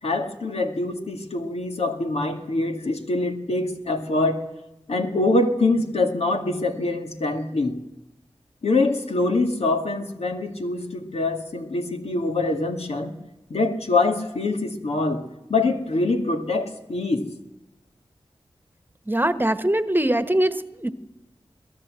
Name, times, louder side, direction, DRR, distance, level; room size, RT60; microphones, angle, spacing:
voice 1, 0.0-4.4 4.9-7.7 8.6-13.1 13.5-15.2 15.5-17.3, left 2 dB, 75° left, 5 dB, 2.3 m, -24 dB
voice 2, 19.1-20.9, right 1 dB, 20° right, 12 dB, 1.3 m, -22 dB
22.5 x 17.5 x 7.7 m, 0.95 s
cardioid pair, 45°, 11 cm